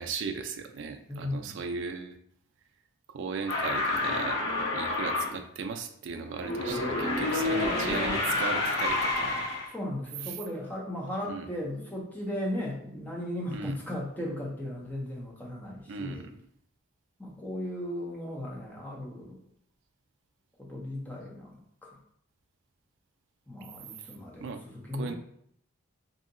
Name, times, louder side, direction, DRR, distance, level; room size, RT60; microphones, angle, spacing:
voice 1, 0.0-2.2 3.1-9.5 11.3-11.5 13.5-13.8 15.9-16.3 24.4-24.6 24.9-25.1, right 5 dB, 60° right, 5 dB, 0.3 m, -37 dB
voice 2, 1.1-1.6 9.7-16.2 17.2-19.4 20.6-22.0 23.5-25.1, left 1 dB, 10° left, -3 dB, 0.5 m, -36 dB
sound 1, 3.5-5.3 6.3-9.7, left 2 dB, 65° left, 0.8 m, -29 dB
2.7 x 2.7 x 2.5 m, 0.68 s
head